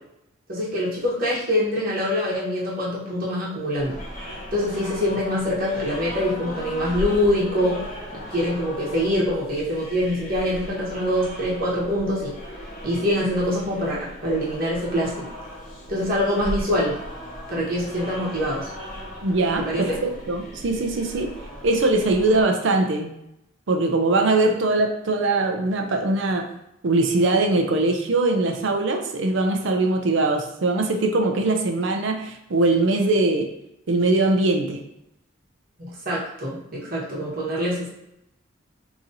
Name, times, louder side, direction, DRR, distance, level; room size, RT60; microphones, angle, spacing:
voice 1, 0.5-4.0 4.5-7.8 8.1-12.3 12.8-15.2 15.9-16.9 17.5-18.7 19.6-20.0 35.8-37.9, left 1 dB, 45° right, -6 dB, 1.1 m, -24 dB
sound 1, 3.7-22.4, equal, 40° left, 1.0 m, -37 dB
voice 2, 19.2-21.3 21.6-23.1 23.7-26.5 26.8-33.5 33.9-34.8, right 2 dB, 60° right, 4 dB, 0.5 m, -21 dB
3.0 x 2.6 x 3.8 m, 0.83 s
head